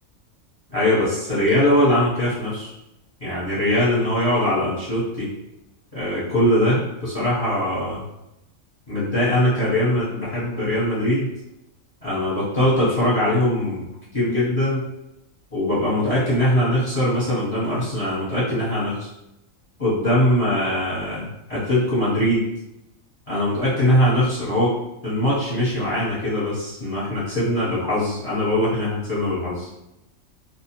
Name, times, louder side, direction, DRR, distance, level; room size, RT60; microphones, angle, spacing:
voice 1, 0.7-2.7 3.2-5.3 5.9-8.0 8.9-11.3 12.0-13.9 14.1-14.9 15.5-19.1 19.8-22.4 23.3-24.7 25.0-29.7, left 1 dB, 30° left, -10 dB, 0.9 m, -21 dB
2.4 x 2.1 x 2.8 m, 0.89 s
omnidirectional pair, 1.4 m